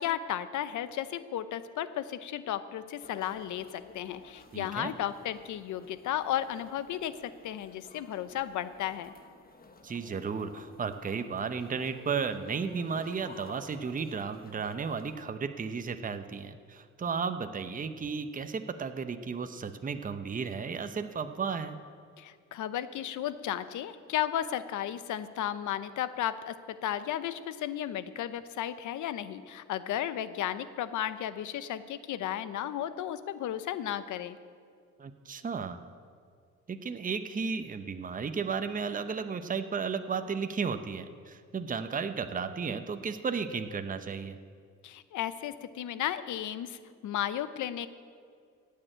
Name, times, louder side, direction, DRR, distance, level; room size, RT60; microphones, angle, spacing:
voice 1, 0.0-9.1 22.2-26.6 26.8-34.4 44.8-47.9, left 11 dB, 75° left, 13 dB, 0.8 m, -34 dB
sound 1, 3.0-15.2, left 3 dB, 30° left, 1.3 m, -54 dB
voice 2, 4.5-4.9 9.8-21.8 35.0-35.8 36.7-44.4, right 5 dB, 30° right, 8 dB, 0.8 m, -34 dB
15.5 x 6.7 x 9.1 m, 2.2 s
cardioid pair, 90°, 30 cm